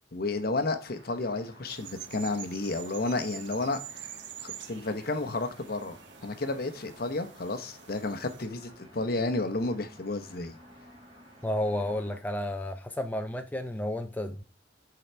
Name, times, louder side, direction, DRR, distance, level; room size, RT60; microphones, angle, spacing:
voice 1, 0.1-4.1 4.4-10.6, left 2 dB, 55° left, 0.8 m, -32 dB
sound 1, 0.8-12.2, equal, 30° right, 2.7 m, -54 dB
sound 2, 1.6-8.5, right 10 dB, 70° right, 0.7 m, -46 dB
voice 2, 11.4-14.4, left 1 dB, 10° left, 0.4 m, -31 dB
9.8 x 3.9 x 4.5 m
head